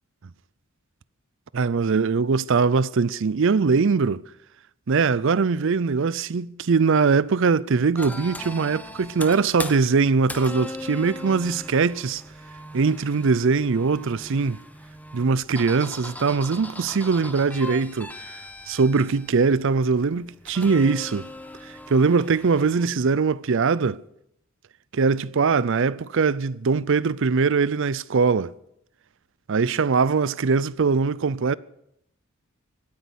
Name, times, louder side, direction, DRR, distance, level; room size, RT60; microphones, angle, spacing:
voice 1, 1.5-4.2 4.9-12.2 12.7-14.6 15.1-18.4 18.7-21.3 21.6-24.0 24.9-28.5 29.5-31.5, right 4 dB, 60° right, 0.5 m, -21 dB
sound 1, 8.0-22.9, left 1 dB, 5° left, 0.9 m, -39 dB
17.5 x 9.7 x 8.0 m
head